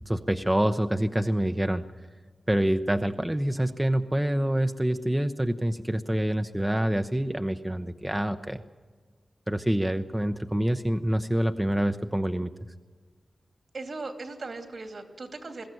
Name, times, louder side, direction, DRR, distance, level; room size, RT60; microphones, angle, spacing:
voice 1, 0.1-1.8 2.5-8.6 9.5-12.5, right 1 dB, 10° right, 7 dB, 0.7 m, -26 dB
voice 2, 13.7-15.7, right 3 dB, 65° right, 5 dB, 2.8 m, -38 dB
22.0 x 15.0 x 9.2 m, 1.5 s
wide cardioid pair, 110°, 0 cm